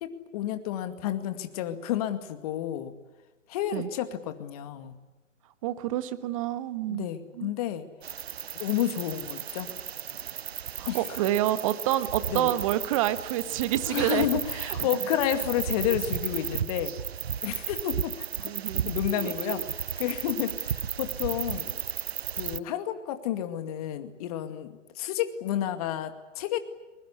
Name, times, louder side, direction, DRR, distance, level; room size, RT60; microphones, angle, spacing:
voice 1, 0.0-2.9 3.5-5.0 6.9-7.9 8.5-9.7 10.9-11.2 12.3-12.5 13.9-16.9 17.4-18.3 18.7-21.8 22.4-26.6, left 11 dB, 30° left, 8 dB, 2.2 m, -31 dB
voice 2, 5.6-7.1 7.3-7.5 10.8-14.3 14.5-14.8 18.4-19.6, right 13 dB, 25° right, 13 dB, 1.4 m, -28 dB
sound 1, 8.0-22.6, right 9 dB, 55° right, 1.0 m, -34 dB
23.5 x 21.5 x 9.8 m, 1.1 s
figure-of-eight pair, 135°, 38 cm